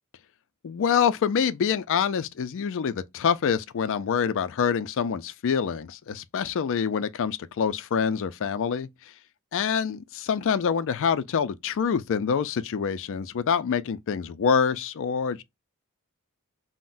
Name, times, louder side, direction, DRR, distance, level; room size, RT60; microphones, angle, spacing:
voice 1, 0.6-8.9 9.5-15.4, left 7 dB, 60° left, 0.4 m, -26 dB
3.7 x 2.1 x 2.5 m
head